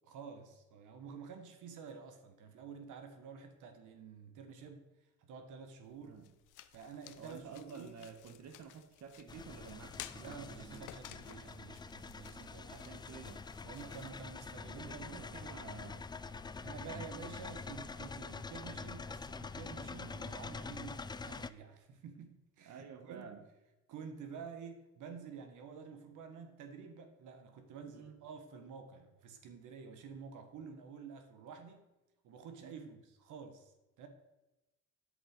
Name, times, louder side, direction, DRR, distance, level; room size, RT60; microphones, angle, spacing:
voice 1, 0.1-6.2 6.7-8.1 10.2-12.7 13.6-15.4 16.6-23.4 23.9-31.9 32.2-34.1, right 6 dB, 85° right, 1.2 m, -50 dB
sound 1, 5.8-14.8, left 13 dB, 80° left, 0.6 m, -55 dB
voice 2, 7.2-10.9 12.4-13.4 14.7-16.1 16.8-17.1 20.1-20.3 22.6-23.4 27.9-28.2 32.6-32.9, right 6 dB, 65° right, 1.1 m, -51 dB
sound 2, 9.3-21.5, left 4 dB, 15° left, 0.3 m, -46 dB
sound 3, 12.4-20.0, right 1 dB, 30° right, 2.4 m, -62 dB
11.0 x 5.3 x 5.1 m
cardioid pair, 90°, 30 cm